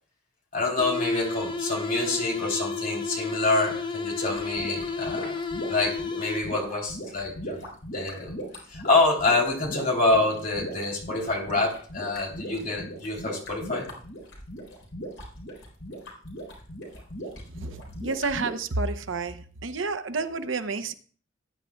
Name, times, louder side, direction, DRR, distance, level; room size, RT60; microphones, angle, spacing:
voice 1, 0.5-5.4 5.7-7.6 7.9-8.3 8.7-13.9, left 2 dB, 45° left, 0 dB, 3.2 m, -26 dB
sound 1, 0.8-6.7, left 4 dB, 25° left, 0.8 m, -32 dB
sound 2, 4.2-18.5, equal, 80° left, 4.3 m, -39 dB
voice 2, 18.0-20.9, right 3 dB, 75° right, 9 dB, 0.8 m, -30 dB
18.5 x 9.9 x 2.3 m, 0.42 s
head